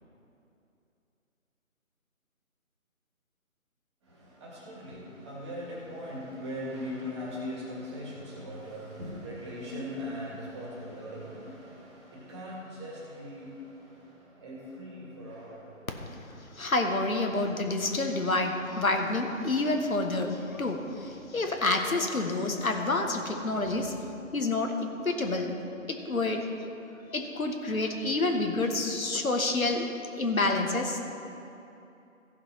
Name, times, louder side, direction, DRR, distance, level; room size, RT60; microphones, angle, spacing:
voice 1, 4.4-13.5 14.4-15.6, equal, 20° right, -5 dB, 2.2 m, -39 dB
voice 2, 16.0-24.0 24.3-24.7 25.0-25.6 25.9-26.4 27.1-29.9 30.2-31.0, left 2 dB, 90° left, 3 dB, 1.6 m, -28 dB
15.0 x 6.0 x 6.0 m, 2.8 s
figure-of-eight pair, 160°, 40 cm